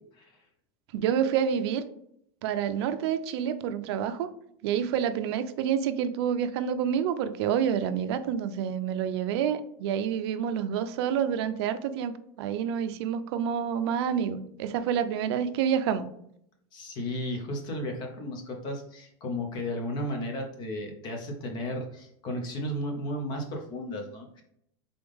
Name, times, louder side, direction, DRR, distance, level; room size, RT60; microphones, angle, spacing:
voice 1, 0.9-1.9 2.4-4.3 4.6-16.1, right 8 dB, 65° right, 11 dB, 0.4 m, -28 dB
voice 2, 16.7-24.4, left 1 dB, 30° left, 3 dB, 0.7 m, -34 dB
3.8 x 3.4 x 3.5 m, 0.72 s
supercardioid pair, 180°, 15 cm